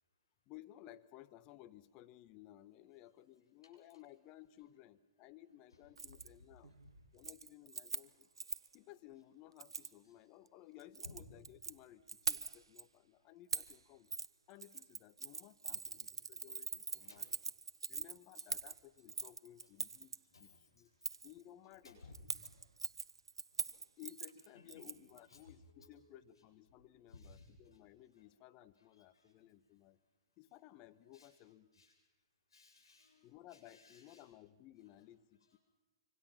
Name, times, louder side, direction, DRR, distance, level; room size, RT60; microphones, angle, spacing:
voice 1, 0.5-6.7 7.1-8.3 8.7-14.1 14.5-17.3 17.9-20.9 21.2-22.0 24.0-30.0 30.4-31.7 33.2-35.6, left 14 dB, 35° left, 13 dB, 1.2 m, -58 dB
voice 2, 5.7-6.1 10.0-10.1 11.0-11.2 15.7-16.1 16.9-17.3 19.6-19.7 20.3-20.5 20.8-20.9 21.8-22.2 22.4-22.5 23.5-23.6 24.5-24.9 25.3-26.3 27.1-27.8 28.1-28.3 28.8-29.3 31.1-31.3 31.7-32.0 32.5-34.3 35.5-35.6, left 3 dB, 85° left, 2 dB, 7.7 m, -61 dB
Keys jangling, 6.0-6.3 6.6-6.9 7.2-8.8 9.6-9.9 10.8-11.7 12.1-12.8 13.5-13.8 14.1-14.3 14.6-20.2 21.0-21.3 22.1-25.2 25.5-25.6, right 5 dB, 90° right, 0.8 m, -42 dB
25.5 x 25.5 x 5.9 m, 1.1 s
hypercardioid pair, 125°, 2 cm